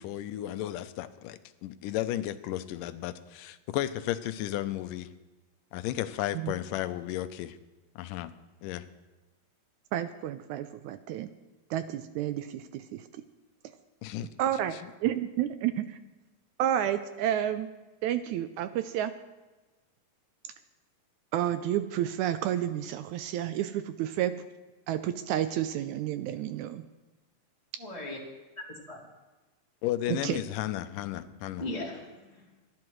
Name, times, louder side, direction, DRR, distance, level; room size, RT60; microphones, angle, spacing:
voice 1, 0.0-5.1 5.7-7.6 8.0-8.3 8.6-8.9 14.0-14.3 29.8-31.7, left 13 dB, 80° left, 11 dB, 2.2 m, -33 dB
voice 2, 9.9-11.3 11.7-13.1 14.4-16.0 16.6-17.7 18.0-19.1 21.3-24.4 24.9-26.9 30.1-30.4, right 11 dB, 80° right, 11 dB, 1.7 m, -30 dB
voice 3, 27.8-28.2 28.7-29.0 31.6-32.6, left 2 dB, 10° right, -5 dB, 2.2 m, -38 dB
26.5 x 10.5 x 3.1 m, 1.2 s
omnidirectional pair, 3.9 m